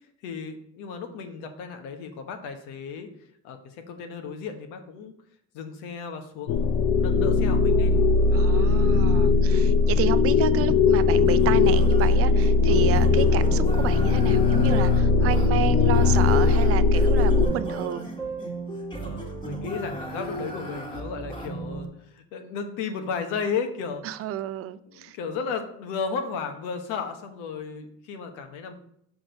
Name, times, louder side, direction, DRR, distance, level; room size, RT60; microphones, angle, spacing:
voice 1, 0.2-3.1 3.4-5.1 5.5-6.7 7.0-8.0 19.0-24.0 24.7-28.7, left 5 dB, 85° left, 1.2 m, -34 dB
sound 1, 6.5-17.5, left 4 dB, 55° left, 0.7 m, -19 dB
voice 2, 8.3-18.1 24.0-25.2, right 12 dB, 50° right, 0.5 m, -30 dB
sound 2, 11.2-21.9, right 2 dB, 15° left, 1.6 m, -35 dB
6.0 x 5.1 x 5.1 m
cardioid pair, 125°, 31 cm